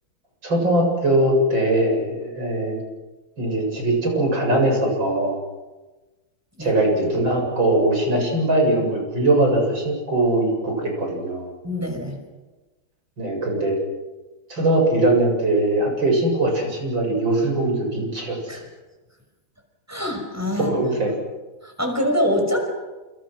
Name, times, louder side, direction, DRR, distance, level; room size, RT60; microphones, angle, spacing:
voice 1, 0.4-2.8 3.4-5.4 6.6-11.5 13.2-13.8 14.5-18.6 20.6-21.1, right 1 dB, 60° right, 1 dB, 8.4 m, -21 dB
voice 2, 11.6-12.2 18.5-18.7 19.9-20.8 21.6-22.7, equal, 5° right, 3 dB, 5.8 m, -24 dB
28.5 x 28.0 x 6.3 m, 1.2 s
omnidirectional pair, 2.4 m